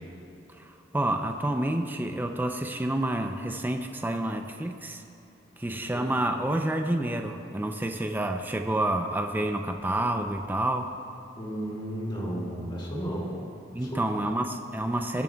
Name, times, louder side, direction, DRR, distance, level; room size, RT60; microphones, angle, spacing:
voice 1, 0.6-5.0 5.6-10.9 13.7-15.2, right 1 dB, 10° right, 5 dB, 0.4 m, -29 dB
voice 2, 11.4-13.3 13.8-14.0, equal, 25° left, -4 dB, 2.3 m, -33 dB
20.0 x 11.0 x 2.3 m, 2.7 s
head